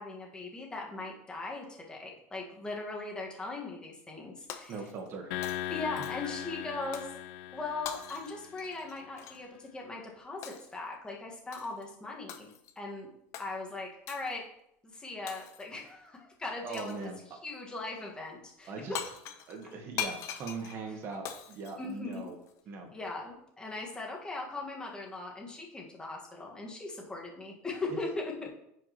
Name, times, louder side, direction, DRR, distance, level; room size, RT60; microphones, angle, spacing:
voice 1, 0.0-4.7 5.7-7.1 7.5-12.5 12.7-13.1 13.4-14.4 14.8-17.1 17.4-18.7 21.8-22.3 22.9-28.5, left 3 dB, 15° left, -1 dB, 1.7 m, -39 dB
Shatter, 4.5-5.2 5.4-6.4 6.9-7.2 7.8-9.4 10.4-10.8 11.5-11.8 12.3-12.8 13.3-13.5 14.1-14.3 15.3-15.8 16.7-17.1 18.6-18.7 18.9-22.5, left 9 dB, 55° left, 0.9 m, -42 dB
voice 2, 4.7-5.3 16.6-17.2 18.7-19.0 19.5-22.3 22.7-22.9, right 4 dB, 45° right, 2 dB, 1.4 m, -40 dB
sound 1, 5.3-8.8, left 12 dB, 80° left, 0.5 m, -39 dB
9.6 x 5.2 x 3.1 m, 0.78 s
supercardioid pair, 120°, 6 cm